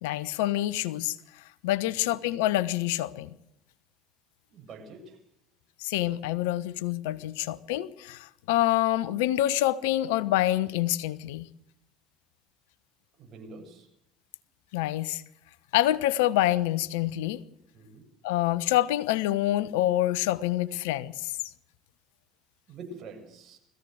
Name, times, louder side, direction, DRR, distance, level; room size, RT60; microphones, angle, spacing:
voice 1, 0.0-3.3 5.8-11.5 14.7-15.2 15.7-17.4 18.2-21.3, left 14 dB, 75° left, 17 dB, 1.0 m, -27 dB
voice 2, 4.5-5.2 7.3-7.4 13.2-13.9 17.7-18.0 22.7-23.6, right 3 dB, 45° right, 3 dB, 7.5 m, -45 dB
21.0 x 15.5 x 7.9 m, 0.74 s
hypercardioid pair, 70°, 0 cm